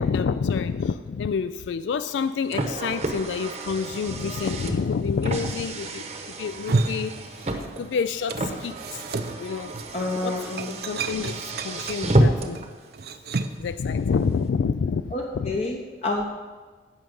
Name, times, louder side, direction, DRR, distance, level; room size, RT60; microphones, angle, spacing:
voice 1, 0.0-7.5 7.8-9.1 9.4-9.7 10.2-12.6 13.6-15.5, left 5 dB, 80° left, 12 dB, 0.3 m, -28 dB
Car, 2.1-12.7, right 1 dB, 35° right, 0.9 m, -29 dB
sound 1, 6.5-7.9 8.1-13.7, right 3 dB, 55° right, 0.6 m, -31 dB
voice 2, 9.9-10.8 15.1-16.3, left 2 dB, 35° left, 0 dB, 0.8 m, -28 dB
15.5 x 5.9 x 5.3 m, 1.4 s
head